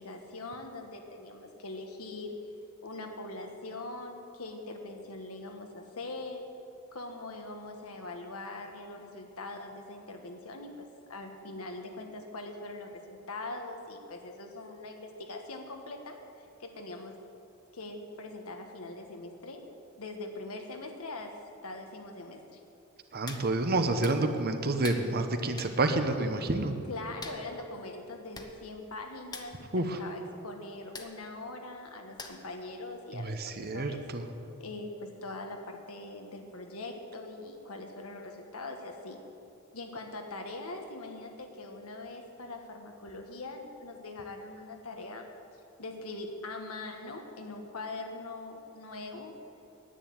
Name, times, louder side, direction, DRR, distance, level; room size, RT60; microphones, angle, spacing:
voice 1, 0.0-2.5 2.8-6.5 6.9-17.2 17.7-19.6 20.0-22.6 26.9-34.0 34.6-39.2 39.7-45.3 45.8-49.3, left 2 dB, 85° left, 4 dB, 1.5 m, -42 dB
voice 2, 23.1-26.7 29.7-30.0 33.1-34.2, right 2 dB, 45° right, 7 dB, 1.0 m, -29 dB
Hands, 23.3-23.5 24.0-24.2 24.8-25.1 25.6-25.8 27.2-27.4 28.1-28.2 28.3-28.5 28.8-29.0 29.3-29.5 30.9-31.1 32.2-32.5 33.0-33.1, left 3 dB, 20° left, 0.9 m, -42 dB
10.0 x 9.7 x 8.7 m, 2.8 s
head